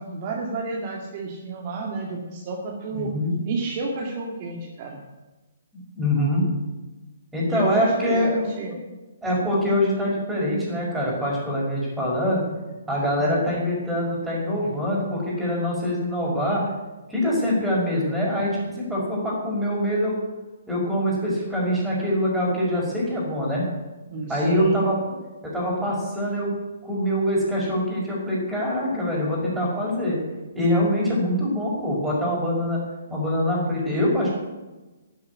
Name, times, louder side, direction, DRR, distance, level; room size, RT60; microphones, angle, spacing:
voice 1, 0.0-3.1 3.4-5.0 7.5-8.7 13.2-13.6 24.1-24.8, right 2 dB, 35° right, -1 dB, 2.2 m, -30 dB
voice 2, 2.9-3.4 5.7-6.4 7.3-8.7 9.2-12.4 12.9-16.6 17.1-20.1 20.7-23.7 24.3-25.0 25.4-26.5 26.8-30.2 30.5-32.8 33.1-34.3, equal, 5° right, -5 dB, 5.6 m, -24 dB
12.5 x 7.9 x 9.8 m, 1.1 s
hypercardioid pair, 155°, 0 cm